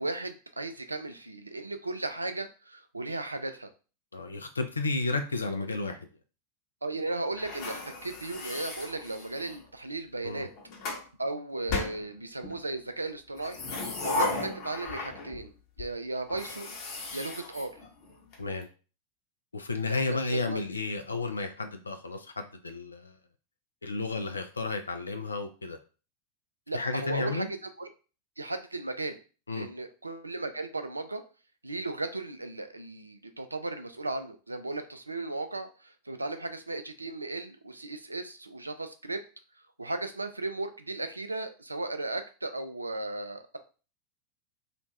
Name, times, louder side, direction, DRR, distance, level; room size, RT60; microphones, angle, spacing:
voice 1, 0.0-3.7 6.8-10.5 11.2-13.6 14.0-15.5 15.8-16.7 17.1-17.8 19.9-20.6 26.7-27.9 28.4-29.2 29.5-31.2 31.6-39.2 39.8-43.6, right 2 dB, 80° right, 8 dB, 0.3 m, -36 dB
voice 2, 4.1-6.1 10.2-10.5 18.4-18.7 19.5-23.2 23.8-25.8 26.7-27.5 29.5-29.7, left 3 dB, 75° left, 6 dB, 0.3 m, -32 dB
sound 1, 7.4-9.6 10.4-11.1 11.7-12.6 13.3-15.5 15.8-15.9 16.3-18.3, left 2 dB, 40° left, 0.8 m, -35 dB
2.4 x 2.2 x 3.0 m, 0.35 s
figure-of-eight pair, 90°, 0 cm